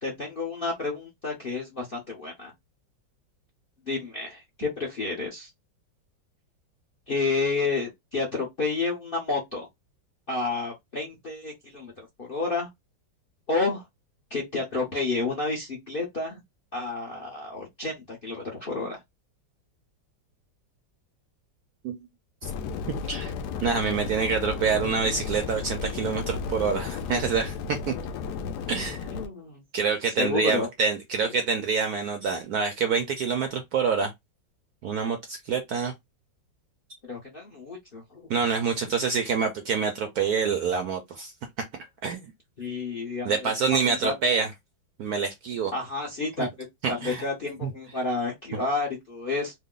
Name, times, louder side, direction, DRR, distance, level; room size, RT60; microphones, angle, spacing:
voice 1, 0.0-2.5 3.9-5.5 7.1-9.7 10.3-11.9 12.2-12.7 13.5-13.8 14.3-16.4 16.7-19.0 29.1-29.6 30.2-30.7 37.1-38.2 42.6-44.1 45.7-46.5 46.9-49.5, left 3 dB, 50° left, 0.6 m, -30 dB
sound 1, 22.4-29.3, left 6 dB, 75° left, 1.0 m, -33 dB
voice 2, 23.6-27.5 27.9-28.0 28.7-29.0 29.7-34.1 34.8-35.9 38.3-41.3 42.0-42.2 43.2-44.5 45.0-45.7 46.4-46.5 46.8-47.2 47.6-47.7, right 5 dB, 70° right, 0.9 m, -26 dB
3.2 x 2.1 x 3.6 m
omnidirectional pair, 2.1 m